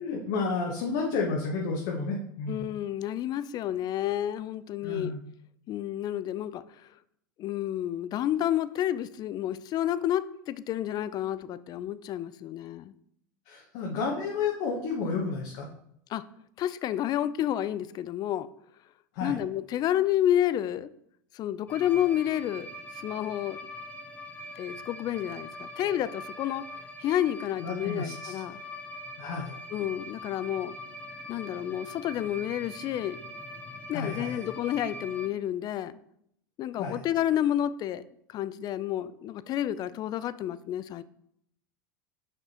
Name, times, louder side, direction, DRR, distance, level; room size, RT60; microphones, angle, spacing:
voice 1, 0.0-2.7 4.8-5.2 13.5-15.7 19.1-19.4 27.6-28.3 29.2-29.5 33.9-34.5 36.8-37.0, left 4 dB, 65° left, -1 dB, 1.0 m, -31 dB
voice 2, 2.5-5.1 5.7-6.6 7.4-12.9 16.1-16.2 16.6-18.5 19.2-20.9 21.3-22.7 23.0-23.6 24.6-26.7 27.0-28.6 29.7-30.7 31.3-33.2 33.9-35.9 36.6-38.0 38.3-41.0, left 11 dB, 40° left, 16 dB, 0.4 m, -30 dB
sound 1, 21.7-35.3, left 1 dB, 15° left, 0.8 m, -43 dB
6.0 x 5.4 x 2.9 m, 0.72 s
hypercardioid pair, 105°, 11 cm